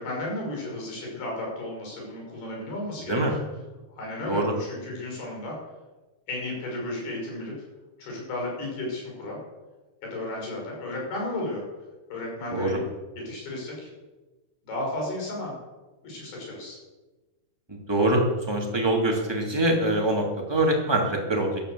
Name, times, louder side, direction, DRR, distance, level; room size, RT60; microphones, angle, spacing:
voice 1, 0.0-3.4 3.9-5.5 6.3-7.5 8.0-9.4 10.0-11.7 12.1-12.8 13.2-13.9 14.6-15.5 16.0-16.8, left 1 dB, 80° left, -1 dB, 7.5 m, -33 dB
voice 2, 17.7-21.6, right 1 dB, 10° right, 0 dB, 2.2 m, -24 dB
13.0 x 12.5 x 7.8 m, 1.2 s
omnidirectional pair, 4.4 m